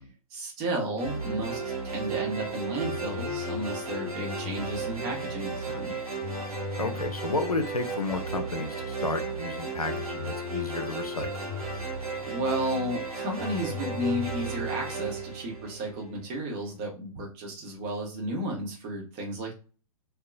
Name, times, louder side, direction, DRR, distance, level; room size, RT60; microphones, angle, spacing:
voice 1, 0.3-6.0 12.2-19.5, right 1 dB, 30° right, 0 dB, 1.0 m, -33 dB
sound 1, 1.0-16.2, right 2 dB, 75° right, 1.1 m, -34 dB
voice 2, 6.8-11.3, left 3 dB, 90° left, 7 dB, 0.5 m, -32 dB
3.7 x 2.2 x 2.3 m, 0.36 s
figure-of-eight pair, 115°, 19 cm